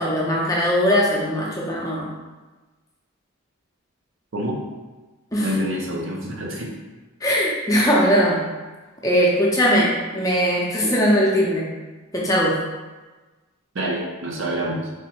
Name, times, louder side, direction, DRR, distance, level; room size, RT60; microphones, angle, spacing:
voice 1, 0.0-2.1 5.3-5.5 7.2-8.4 9.0-11.7 12.1-12.6, equal, 15° left, -4 dB, 0.5 m, -20 dB
voice 2, 5.4-6.7 13.7-14.8, equal, 70° right, -2 dB, 0.7 m, -27 dB
3.4 x 2.0 x 4.3 m, 1.2 s
head